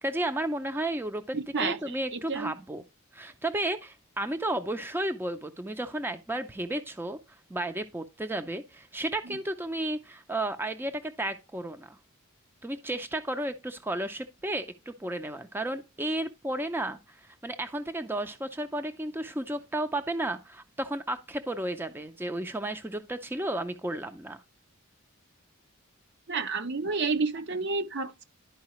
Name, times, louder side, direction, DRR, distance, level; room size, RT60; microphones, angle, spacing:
voice 1, 0.0-2.8 3.1-7.2 7.5-12.0 12.6-24.4, right 1 dB, 10° right, 0.5 m, -33 dB
voice 2, 1.3-2.5 9.3-9.4 26.3-28.2, right 4 dB, 55° right, 0.8 m, -30 dB
11.5 x 4.8 x 3.0 m
head